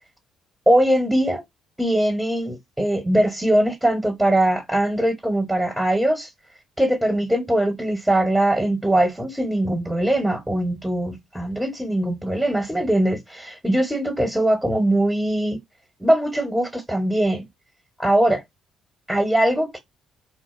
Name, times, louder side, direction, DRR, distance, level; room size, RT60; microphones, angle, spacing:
voice 1, 0.7-1.4 1.8-6.3 6.8-15.6 16.0-17.4 18.0-18.4 19.1-19.8, right 1 dB, 5° right, 1.2 m, -21 dB
4.0 x 2.3 x 2.5 m
figure-of-eight pair, 45°, 0 cm